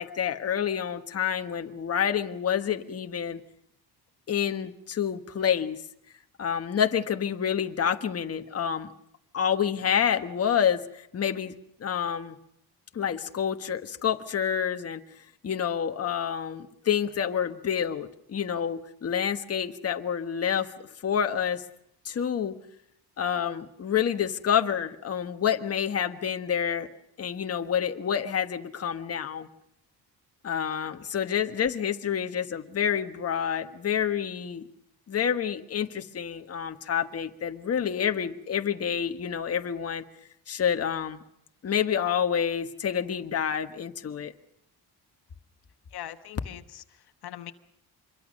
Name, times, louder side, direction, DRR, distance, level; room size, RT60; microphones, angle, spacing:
voice 1, 0.0-3.4 4.3-5.8 6.4-8.9 9.3-11.5 11.8-12.4 12.9-15.0 15.4-21.6 22.0-22.6 23.2-26.9 27.2-29.5 30.4-34.7 35.1-40.0 40.5-41.2 41.6-44.3, left 8 dB, 35° left, 6 dB, 1.4 m, -28 dB
voice 2, 45.9-47.5, left 12 dB, 70° left, 9 dB, 1.2 m, -42 dB
26.0 x 22.5 x 6.4 m, 0.77 s
cardioid pair, 140°, 41 cm